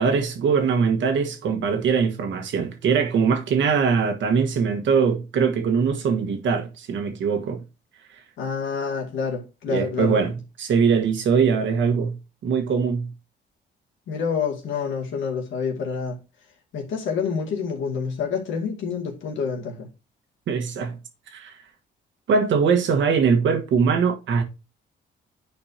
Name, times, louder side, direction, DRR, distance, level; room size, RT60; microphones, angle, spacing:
voice 1, 0.0-7.6 9.7-12.2 12.4-13.1 20.5-21.0 21.3-21.5 22.3-24.4, right 6 dB, 70° right, 1.4 m, -22 dB
voice 2, 8.4-10.2 14.1-16.2 16.7-19.9, left 6 dB, 75° left, 2.3 m, -27 dB
10.5 x 4.4 x 2.8 m
cardioid pair, 90°, 20 cm